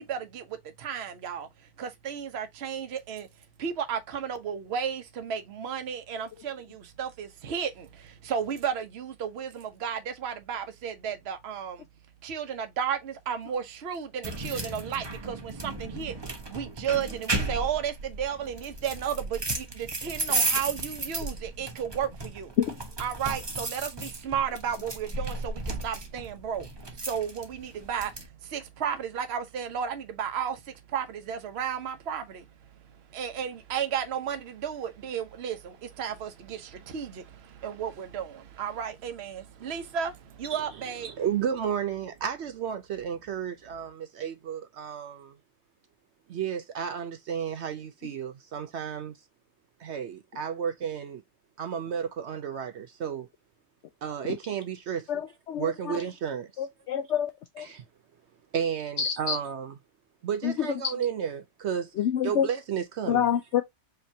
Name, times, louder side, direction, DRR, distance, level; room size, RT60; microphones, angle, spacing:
voice 1, 0.0-3.3 3.6-11.9 12.2-22.5 23.0-41.1, right 8 dB, 45° right, 1.0 m, -33 dB
sound 1, 14.2-28.3, right 2 dB, 25° right, 0.6 m, -34 dB
voice 2, 41.0-45.3 46.3-49.2 49.8-51.2 51.6-53.3 54.0-55.2 55.5-56.7 57.6-57.8 58.5-59.8 60.2-61.9 62.2-63.3, right 8 dB, 75° right, 0.6 m, -32 dB
voice 3, 55.1-56.0 56.6-57.3 57.6-57.7 59.0-59.3 60.4-60.7 62.0-62.5 63.1-63.6, left 9 dB, 75° left, 0.6 m, -27 dB
4.9 x 3.2 x 2.7 m
omnidirectional pair, 1.8 m